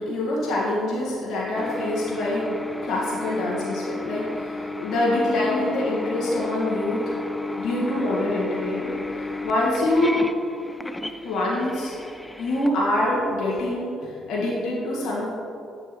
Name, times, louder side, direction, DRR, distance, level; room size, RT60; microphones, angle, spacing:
voice 1, 0.0-7.1 7.6-10.2 11.2-11.9 12.4-15.3, left 1 dB, 75° left, -6 dB, 2.0 m, -25 dB
sound 1, 1.5-13.6, left 2 dB, 10° left, 0.5 m, -33 dB
8.5 x 8.0 x 3.2 m, 2.6 s
supercardioid pair, 60°, 0 cm